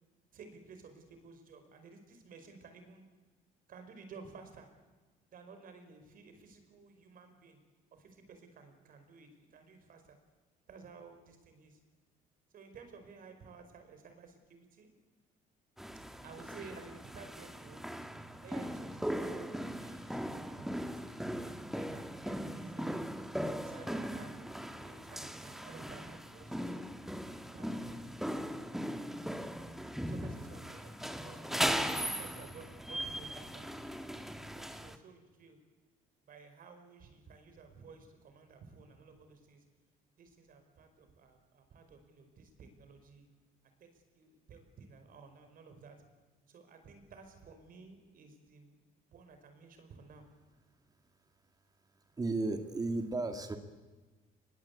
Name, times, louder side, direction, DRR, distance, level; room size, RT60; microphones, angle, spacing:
voice 1, 0.3-3.0 3.7-4.7 5.3-7.6 7.9-10.2 10.7-11.8 12.5-14.9 16.2-17.8 18.4-23.0 23.6-26.8 27.5-28.2 30.1-33.7 34.4-35.6 36.3-39.6 40.2-43.3 43.8-46.0 46.5-48.8 49.1-50.3, right 4 dB, 55° right, 7 dB, 5.1 m, -54 dB
sound 1, 15.8-35.0, equal, ahead, 1.6 m, -39 dB
voice 2, 52.2-53.6, right 2 dB, 20° right, 7 dB, 2.1 m, -34 dB
24.5 x 21.5 x 8.4 m, 1.3 s
cardioid pair, 110°, 17 cm